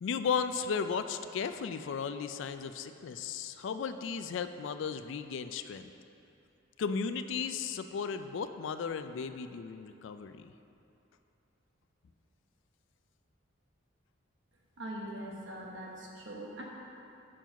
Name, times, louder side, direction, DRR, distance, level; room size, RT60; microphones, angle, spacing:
voice 1, 0.0-5.9 6.8-10.5, left 6 dB, 70° left, 10 dB, 0.3 m, -35 dB
voice 2, 14.8-16.6, right 1 dB, 65° right, -2 dB, 1.1 m, -42 dB
7.4 x 4.6 x 5.8 m, 2.8 s
head